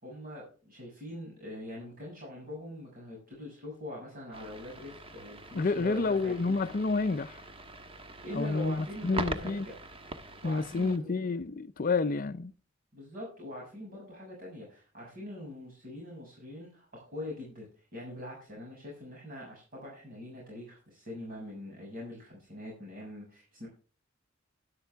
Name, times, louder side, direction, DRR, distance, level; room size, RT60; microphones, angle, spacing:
voice 1, 0.0-6.5 8.2-9.8 10.4-11.2 11.5-11.6 12.9-17.7 17.9-23.7, left 1 dB, 45° right, 6.6 m, -43 dB
sound 1, 4.3-11.0, right 2 dB, 30° right, 1.3 m, -42 dB
voice 2, 5.5-7.4 8.3-9.7 10.4-12.5, left 3 dB, 45° left, 0.5 m, -29 dB
12.5 x 11.5 x 3.4 m
head